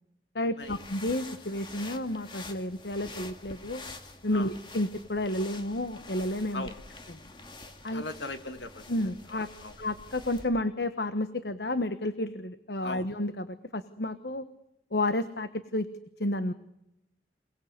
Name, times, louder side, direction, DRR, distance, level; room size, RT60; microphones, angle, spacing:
voice 1, 0.3-3.8 4.2-6.7 7.8-8.0 8.9-9.5 9.8-14.5 14.9-15.9 16.2-16.5, left 1 dB, 70° left, 11 dB, 1.2 m, -31 dB
sound 1, 0.6-10.5, left 3 dB, 25° left, 2.4 m, -47 dB
voice 2, 7.9-8.9 9.3-9.8 12.8-13.1, left 2 dB, 90° left, 8 dB, 2.4 m, -39 dB
27.5 x 20.0 x 8.1 m, 0.87 s
head